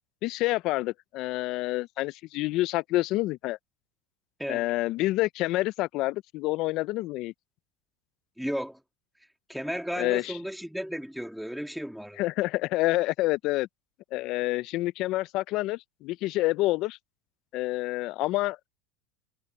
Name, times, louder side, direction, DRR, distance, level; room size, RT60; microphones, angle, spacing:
voice 1, 0.2-3.6 4.5-7.3 10.0-10.4 12.2-13.7 14.1-17.0 17.5-18.7, left 18 dB, 55° left, 0.6 m, -28 dB
voice 2, 8.4-8.8 9.5-12.2, equal, ahead, 2.8 m, -34 dB
supercardioid pair, 105°, 0 cm